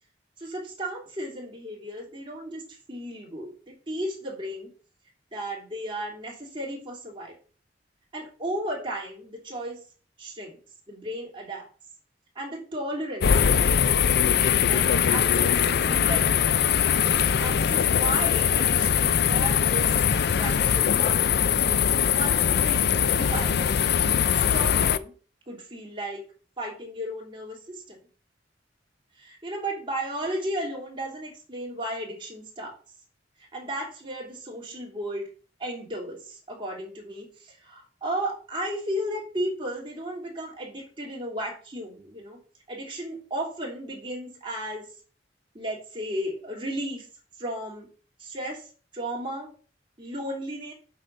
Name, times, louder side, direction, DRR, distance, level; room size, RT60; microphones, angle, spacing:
voice 1, 0.4-4.7 5.3-7.3 8.1-9.8 10.2-10.6 10.9-11.7 12.3-13.6 13.9-14.2 14.6-16.6 17.4-19.9 20.3-21.3 22.1-23.8 24.3-25.1 25.5-26.3 26.6-28.0 29.2-32.7 33.5-35.3 35.6-42.4 42.7-44.9 45.5-47.1 47.4-47.9 48.2-48.7 48.9-49.5 50.0-50.7, right 1 dB, 30° right, -2 dB, 3.1 m, -34 dB
sound 1, 13.2-25.0, left 8 dB, 60° left, 0.5 m, -22 dB
7.6 x 5.1 x 5.4 m, 0.39 s
head